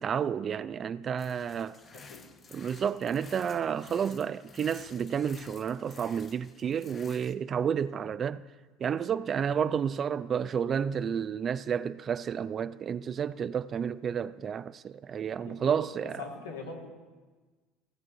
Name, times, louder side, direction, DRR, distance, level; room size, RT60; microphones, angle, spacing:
voice 1, 0.0-1.8 2.5-8.4 8.8-16.2, right 7 dB, 40° right, 0.4 m, -31 dB
sound 1, 1.2-7.3, left 4 dB, 35° left, 0.8 m, -52 dB
voice 2, 1.9-2.3 15.4-16.9, left 3 dB, 90° left, 2.2 m, -43 dB
16.0 x 7.5 x 3.8 m
hypercardioid pair, 80°, 0 cm